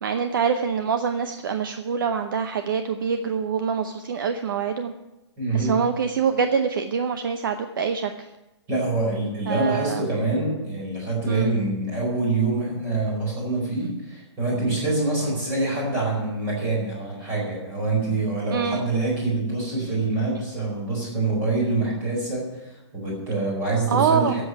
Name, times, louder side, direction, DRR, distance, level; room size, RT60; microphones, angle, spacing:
voice 1, 0.0-4.9 5.5-8.1 9.5-10.0 11.3-11.6 18.5-18.9 23.9-24.4, right 6 dB, 50° right, 8 dB, 0.7 m, -25 dB
voice 2, 5.4-5.8 8.7-24.4, right 3 dB, 15° right, -3 dB, 4.6 m, -25 dB
10.5 x 7.8 x 9.6 m, 1.0 s
hypercardioid pair, 175°, 15 cm